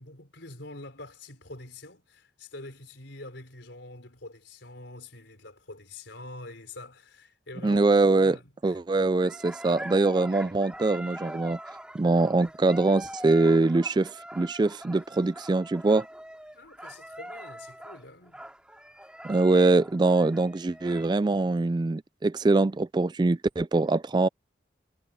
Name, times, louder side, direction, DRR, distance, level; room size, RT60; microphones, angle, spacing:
voice 1, 0.0-7.8 8.2-8.8 16.5-18.4 19.0-19.3, left 2 dB, 70° left, 4.2 m, -45 dB
voice 2, 7.6-8.4 8.6-11.6 11.9-16.1 19.2-24.3, right 2 dB, 25° right, 0.3 m, -23 dB
sound 1, 9.2-21.1, right 1 dB, 5° right, 5.8 m, -43 dB
head